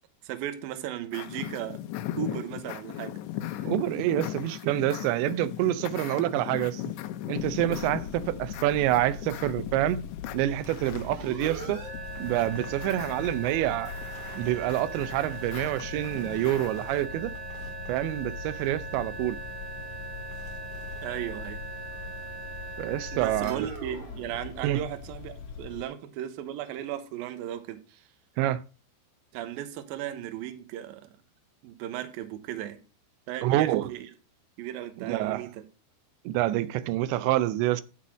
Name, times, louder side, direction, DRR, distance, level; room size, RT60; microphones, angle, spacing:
voice 1, 0.2-1.8 2.2-3.1 3.4-3.7 21.0-21.6 23.1-28.0 29.3-31.0 31.6-32.8 33.3-34.1 34.6-35.6, right 11 dB, 70° right, 2.5 m, -36 dB
sound 1, 1.1-17.1, left 13 dB, 85° left, 3.1 m, -38 dB
voice 2, 3.7-6.8 7.3-10.0 10.3-11.8 12.2-13.9 14.3-17.3 17.9-19.4 22.8-23.7 24.6-24.8 28.4-28.6 33.4-33.9 35.0-35.5 36.3-37.8, right 14 dB, 90° right, 3.0 m, -27 dB
sound 2, 7.4-25.9, left 6 dB, 65° left, 2.1 m, -42 dB
sound 3, 10.6-25.2, right 3 dB, 40° right, 2.8 m, -40 dB
12.0 x 4.2 x 6.2 m
omnidirectional pair, 5.0 m